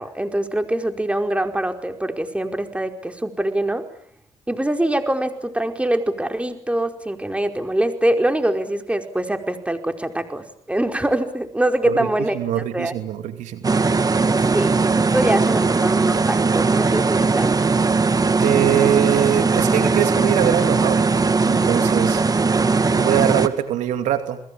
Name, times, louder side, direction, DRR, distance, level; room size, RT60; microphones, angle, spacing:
voice 1, 0.0-3.8 4.5-12.9 14.3-17.5, right 1 dB, 10° right, 5 dB, 5.0 m, -24 dB
voice 2, 12.3-13.7 18.4-22.3 22.9-24.4, right 11 dB, 80° right, 8 dB, 2.6 m, -23 dB
sound 1, 13.6-23.5, right 4 dB, 30° right, 2.3 m, -19 dB
30.0 x 21.5 x 8.8 m, 0.65 s
supercardioid pair, 65°, 12 cm